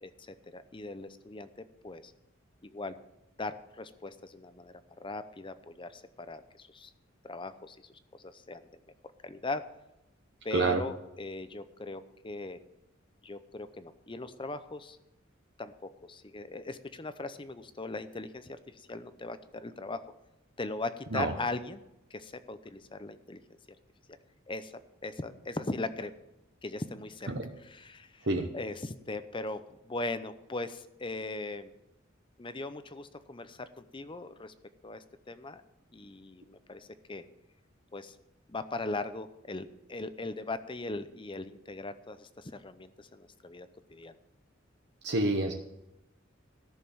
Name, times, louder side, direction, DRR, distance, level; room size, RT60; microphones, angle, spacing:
voice 1, 0.0-1.5 1.8-2.1 2.6-3.0 3.4-6.9 7.2-8.7 9.2-9.6 10.4-12.6 13.2-15.0 15.6-20.0 20.6-21.8 22.1-23.4 24.5-24.7 25.0-26.1 26.6-27.3 27.6-28.3 28.5-31.7 32.4-34.5 34.8-35.6 35.9-37.2 37.9-38.2 38.5-44.1, left 2 dB, 25° left, 12 dB, 0.7 m, -39 dB
voice 2, 45.0-45.5, right 2 dB, 55° right, 2 dB, 1.0 m, -28 dB
14.0 x 6.6 x 7.2 m, 0.91 s
head